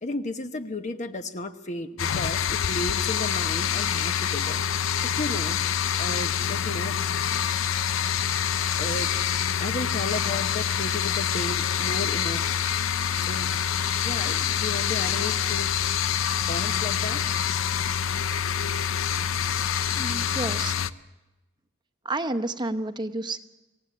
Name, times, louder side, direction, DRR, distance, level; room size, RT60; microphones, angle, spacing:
voice 1, 0.0-4.6 5.0-5.6 6.0-7.0 8.8-9.1 9.6-12.5 13.2-13.5 14.0-15.7 16.5-17.2, left 2 dB, 35° left, 9 dB, 1.0 m, -34 dB
sound 1, 2.0-20.9, left 8 dB, 90° left, 0.7 m, -26 dB
voice 2, 19.8-20.8 22.0-23.4, right 2 dB, 20° right, 9 dB, 1.0 m, -30 dB
27.0 x 16.5 x 8.6 m, 1.1 s
head